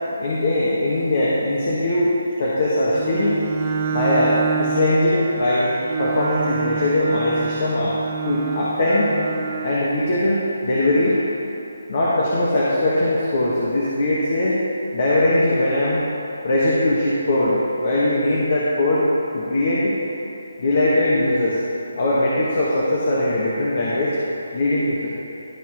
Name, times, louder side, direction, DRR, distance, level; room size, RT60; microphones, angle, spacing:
voice 1, 0.2-2.1 2.4-3.4 3.9-7.9 8.2-9.2 9.6-11.2 11.9-14.6 14.9-16.0 16.4-20.0 20.6-21.6 21.9-24.2 24.5-25.1, left 1 dB, 50° left, -6 dB, 1.4 m, -20 dB
Bowed string instrument, 2.8-9.9, right 6 dB, 35° right, 0.9 m, -27 dB
12.0 x 4.3 x 4.8 m, 2.8 s
figure-of-eight pair, 160°, 0 cm